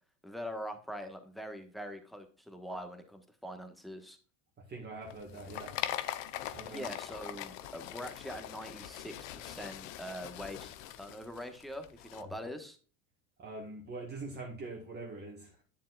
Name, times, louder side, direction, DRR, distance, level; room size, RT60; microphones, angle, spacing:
voice 1, 0.2-4.2 6.7-12.8, equal, ahead, 1.3 m, -43 dB
voice 2, 4.6-5.9 6.5-6.9 12.2-12.3 13.4-15.6, right 2 dB, 25° right, 1.6 m, -44 dB
sound 1, 5.0-12.2, left 13 dB, 80° left, 0.9 m, -42 dB
10.5 x 7.2 x 2.4 m
supercardioid pair, 120°, 39 cm